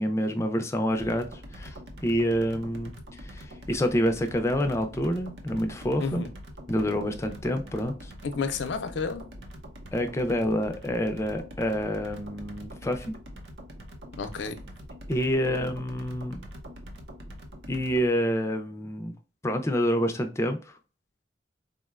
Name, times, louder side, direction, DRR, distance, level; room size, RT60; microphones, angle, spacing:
voice 1, 0.0-1.8 2.0-2.9 3.2-6.2 6.7-8.1 9.9-13.1 15.1-16.4 17.7-19.1 19.4-20.8, equal, 15° left, 0.4 m, -27 dB
sound 1, 0.9-18.1, equal, 70° right, 0.6 m, -44 dB
voice 2, 8.2-9.3 14.2-14.5, left 5 dB, 90° left, 0.5 m, -31 dB
3.7 x 2.1 x 2.3 m
head